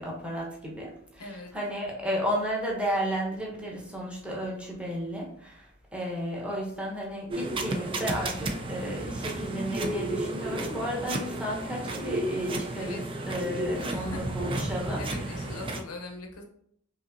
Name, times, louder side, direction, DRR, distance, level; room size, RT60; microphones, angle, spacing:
voice 1, 0.0-15.5, equal, 5° right, -3 dB, 0.9 m, -33 dB
voice 2, 1.2-1.5 12.8-13.0 13.8-14.3 14.9-16.4, left 2 dB, 75° left, 4 dB, 0.8 m, -41 dB
sound 1, 7.3-15.8, right 2 dB, 25° right, 0.4 m, -32 dB
5.2 x 2.8 x 2.5 m, 0.68 s
head